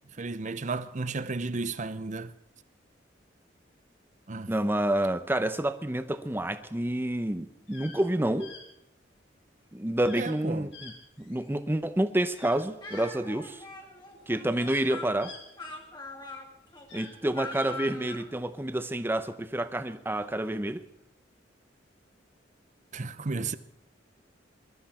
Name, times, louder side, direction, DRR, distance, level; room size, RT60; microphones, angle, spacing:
voice 1, 0.2-2.3 4.3-4.5 10.2-10.7 22.9-23.6, right 3 dB, 40° right, 0.7 m, -33 dB
voice 2, 4.5-8.5 9.7-10.9 11.2-13.6 14.3-15.3 16.9-20.8, right 1 dB, 10° right, 0.7 m, -29 dB
sound 1, 7.6-8.0 8.4-8.6 10.0-10.4 10.7-11.6 12.3-13.0 13.9-14.0 14.3-16.1 16.8-17.7, left 5 dB, 75° left, 3.6 m, -48 dB
Speech, 12.8-18.3, left 3 dB, 25° left, 2.0 m, -42 dB
21.5 x 12.5 x 4.4 m
head